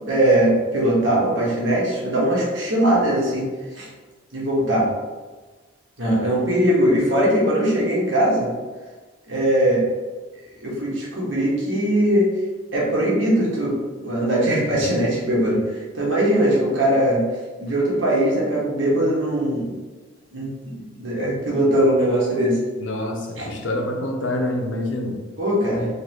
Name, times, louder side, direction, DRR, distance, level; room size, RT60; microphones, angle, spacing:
voice 1, 0.1-3.5 3.7-3.9 4.3-4.9 6.0-8.5 9.3-9.9 10.6-12.3 12.7-13.8 14.0-17.2 17.6-19.7 20.3-22.6 23.4-23.5 25.4-25.9, right 1 dB, 75° right, -5 dB, 1.4 m, -20 dB
voice 2, 22.8-25.2, left 1 dB, 70° left, 1 dB, 0.7 m, -26 dB
4.0 x 3.3 x 3.0 m, 1.3 s
head